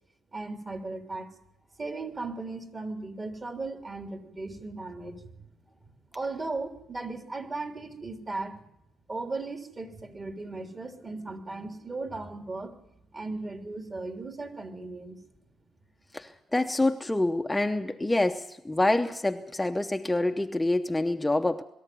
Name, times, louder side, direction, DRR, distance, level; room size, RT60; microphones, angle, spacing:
voice 1, 0.3-1.3 1.8-5.5 6.1-8.6 9.1-12.8 13.1-15.2, right 3 dB, 35° right, 4 dB, 3.3 m, -37 dB
voice 2, 16.1-21.6, left 2 dB, 10° left, 6 dB, 0.8 m, -26 dB
22.5 x 13.5 x 9.4 m, 0.83 s
cardioid pair, 90°, 0 cm